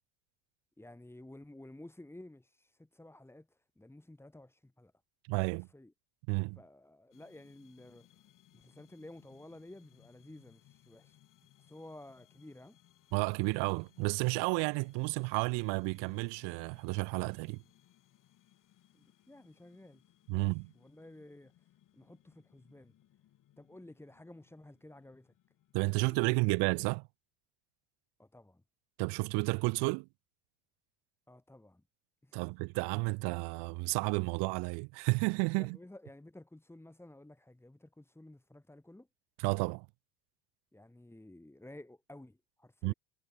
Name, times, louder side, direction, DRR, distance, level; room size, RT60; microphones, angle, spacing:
voice 1, 0.8-4.9 5.7-5.9 6.5-8.1 8.5-11.2 11.6-12.8 18.9-20.0 20.3-21.7 21.9-22.9 23.6-25.3 25.8-26.5 28.2-28.6 31.3-31.8 32.2-32.5 35.5-39.1 40.7-42.9, left 1 dB, 5° left, 4.6 m, -53 dB
voice 2, 5.3-5.7 6.3-6.6 13.1-17.6 20.3-20.7 25.7-27.1 29.0-30.1 32.3-35.8 39.4-39.9 42.8-42.9, right 30 dB, 60° right, 0.7 m, -32 dB
sound 1, 7.1-26.4, left 12 dB, 40° left, 3.2 m, -66 dB
supercardioid pair, 120°, 47 cm